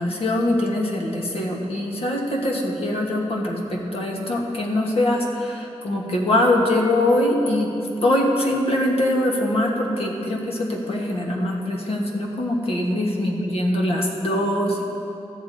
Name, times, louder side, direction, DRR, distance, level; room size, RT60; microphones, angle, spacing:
voice 1, 0.0-7.7 8.0-14.8, left 1 dB, 60° left, -1 dB, 1.6 m, -23 dB
13.5 x 8.4 x 4.1 m, 2.8 s
wide cardioid pair, 130°, 11 cm